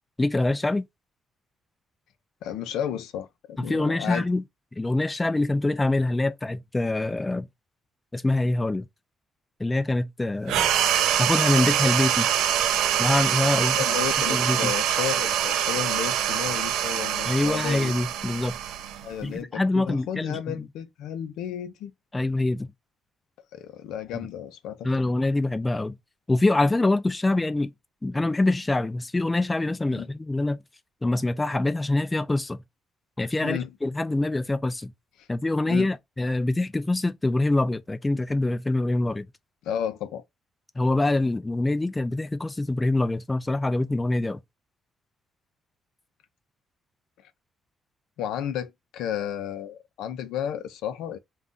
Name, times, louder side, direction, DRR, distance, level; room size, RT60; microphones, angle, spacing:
voice 1, 0.2-0.9 3.6-4.4 4.8-7.5 8.1-8.9 9.6-10.7 11.2-12.3 13.0-13.8 14.3-14.7 17.3-18.6 19.2-20.6 22.1-22.7 24.1-24.3 24.8-25.9 26.3-27.7 28.0-30.6 31.0-32.6 33.2-34.9 35.3-39.3 40.8-44.4, left 2 dB, 15° left, 0.3 m, -25 dB
voice 2, 2.4-4.3 13.5-17.9 19.0-21.9 23.5-24.9 29.9-30.1 33.4-33.7 35.2-35.3 35.6-35.9 39.6-40.2 48.2-51.2, left 10 dB, 90° left, 0.5 m, -33 dB
sound 1, 10.5-19.4, right 10 dB, 90° right, 0.3 m, -24 dB
2.5 x 2.3 x 3.5 m
cardioid pair, 90°, 0 cm